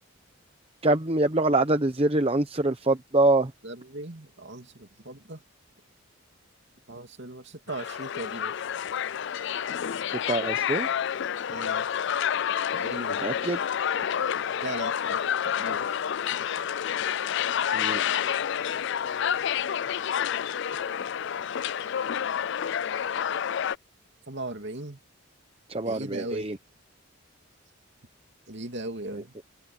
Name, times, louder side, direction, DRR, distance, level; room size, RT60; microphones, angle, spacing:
voice 1, 0.8-3.5 10.1-10.9 13.2-13.6 17.7-18.0 25.7-26.6 29.1-29.2, right 2 dB, 25° right, 0.9 m, -25 dB
voice 2, 3.6-5.4 6.9-8.5 11.5-11.9 12.7-13.2 14.6-15.9 24.3-25.0 25.8-26.5 28.5-29.3, right 2 dB, 55° right, 2.9 m, -38 dB
sound 1, 7.7-23.8, left 8 dB, 55° left, 0.4 m, -29 dB
open air
head